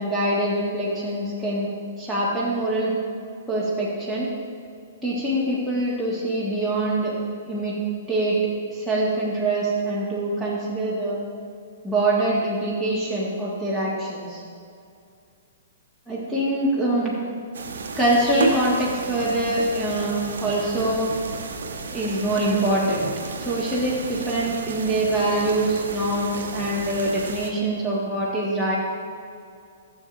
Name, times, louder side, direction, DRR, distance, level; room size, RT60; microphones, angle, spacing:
voice 1, 0.0-1.7 2.0-2.9 3.5-4.3 5.0-7.2 7.5-7.8 8.1-8.4 8.7-11.2 11.8-14.4 16.1-17.1 17.9-21.1 21.9-23.1 23.4-28.8, right 1 dB, 5° left, -7 dB, 1.6 m, -24 dB
sound 1, 17.5-27.5, right 4 dB, 65° right, 0.8 m, -32 dB
13.0 x 7.2 x 2.6 m, 2.4 s
figure-of-eight pair, 115°, 0 cm